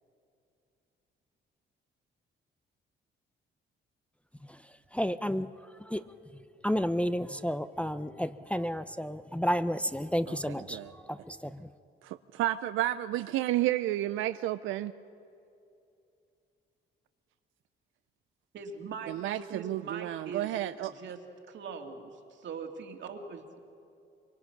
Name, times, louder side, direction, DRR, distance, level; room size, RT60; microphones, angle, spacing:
voice 1, 4.4-11.7, equal, 5° left, 12 dB, 0.6 m, -32 dB
voice 2, 12.0-14.9 19.1-20.9, right 14 dB, 85° right, 11 dB, 0.5 m, -31 dB
voice 3, 18.5-21.2 21.5-23.6, right 5 dB, 70° right, 4 dB, 2.5 m, -42 dB
24.0 x 23.5 x 5.9 m, 2.6 s
cardioid pair, 90°, 20 cm